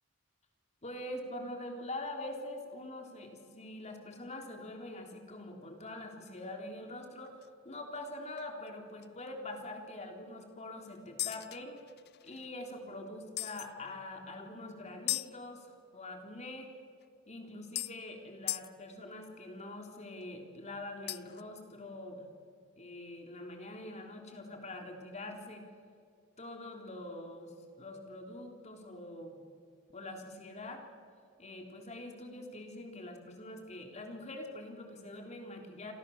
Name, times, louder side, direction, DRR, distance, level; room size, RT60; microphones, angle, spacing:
voice 1, 0.8-11.8 12.2-16.7 17.3-22.3 22.8-25.7 26.4-29.4 29.9-30.8 31.4-35.9, left 1 dB, 35° left, 3 dB, 3.5 m, -44 dB
sound 1, 7.3-7.5 8.0-8.1 8.4-8.5 9.0-9.1 11.2-12.5 13.4-13.7 15.1-15.3 17.0-17.1 17.8-18.0 18.5-18.7 21.1-21.4, left 17 dB, 55° left, 0.5 m, -37 dB
28.5 x 27.0 x 7.2 m, 2.4 s
head